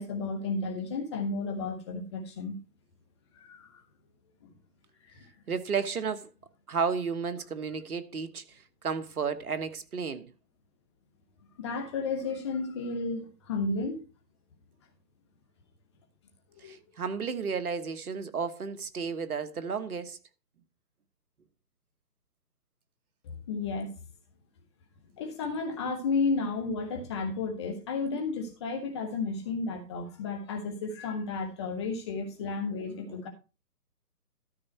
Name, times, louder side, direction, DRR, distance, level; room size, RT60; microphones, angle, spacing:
voice 1, 0.0-2.6 3.4-3.8 5.1-5.3 11.6-14.0 16.5-16.8 23.2-23.9 25.2-33.3, left 4 dB, 15° left, 1.2 m, -33 dB
voice 2, 5.5-6.3 6.7-10.3 16.6-20.2 33.0-33.2, right 5 dB, 60° right, 1.3 m, -33 dB
13.0 x 5.4 x 4.5 m
hypercardioid pair, 155°, 49 cm